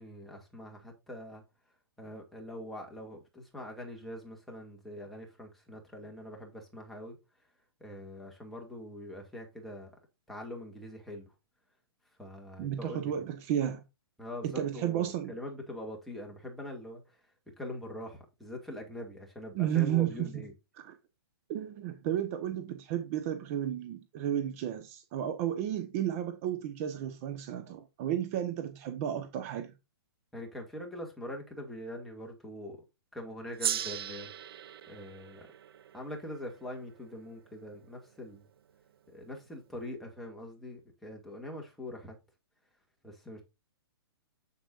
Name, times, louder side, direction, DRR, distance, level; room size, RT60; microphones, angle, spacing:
voice 1, 0.0-1.4 2.0-7.2 7.8-9.9 10.3-11.3 12.2-13.1 14.2-17.2 17.6-20.5 30.3-32.8 33.1-35.5 35.9-38.4 39.1-42.2 43.0-43.4, left 1 dB, ahead, 2.3 m, -43 dB
voice 2, 12.6-13.8 14.4-15.3 19.5-20.3 20.8-20.9 21.5-29.7, right 11 dB, 35° right, 1.2 m, -32 dB
Gong, 33.6-38.3, right 9 dB, 65° right, 0.7 m, -39 dB
8.2 x 7.8 x 2.6 m
hypercardioid pair, 150°, 13 cm